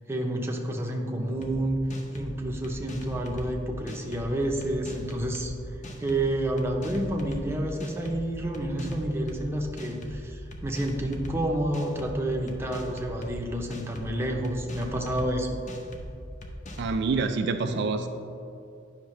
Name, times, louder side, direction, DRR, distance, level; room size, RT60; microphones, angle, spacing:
voice 1, 0.1-1.8 2.1-5.5 6.0-15.6 17.5-17.8, right 1 dB, 15° right, 0 dB, 0.8 m, -29 dB
sound 1, 1.4-1.5 1.9-2.3 2.6-3.5 3.9-4.2 4.6-5.5 5.8-6.2 6.6-7.4 7.8-8.2 8.5-9.4 9.8-10.2 10.5-11.4 11.7-12.1 12.5-13.3 13.7-14.1 14.4-15.3 15.7-16.0 16.4-17.0, left 1 dB, 40° left, 0.8 m, -40 dB
voice 2, 16.8-18.1, right 4 dB, 60° right, 7 dB, 0.4 m, -27 dB
10.0 x 5.7 x 3.2 m, 2.6 s
head